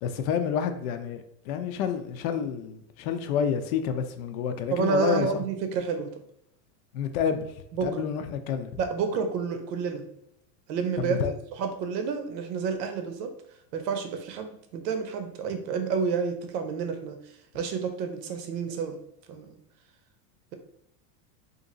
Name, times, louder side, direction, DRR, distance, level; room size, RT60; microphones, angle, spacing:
voice 1, 0.0-5.4 6.9-7.5 7.8-8.8 11.0-11.3, left 7 dB, 60° left, 0.5 m, -29 dB
voice 2, 4.7-6.1 7.7-8.0 8.8-10.0 10.7-11.2 11.6-13.3 13.7-17.2 17.5-19.0 19.3-19.6, right 5 dB, 85° right, 0.8 m, -29 dB
2.8 x 2.6 x 3.8 m
supercardioid pair, 175°, 48 cm